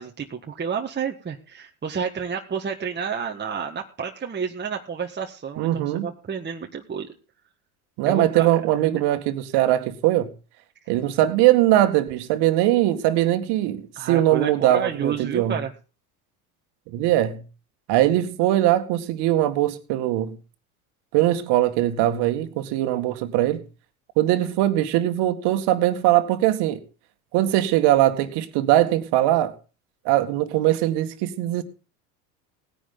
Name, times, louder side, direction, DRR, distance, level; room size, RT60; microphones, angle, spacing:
voice 1, 0.0-7.1 8.1-9.0 14.0-15.7, right 6 dB, 25° right, 1.7 m, -30 dB
voice 2, 5.6-6.1 8.0-10.3 10.9-15.6 16.9-17.4 17.9-20.4 21.1-23.6 24.2-26.8 27.3-29.5 30.1-31.6, right 14 dB, 60° right, 2.0 m, -21 dB
18.5 x 10.0 x 3.8 m
hypercardioid pair, 75°, 45 cm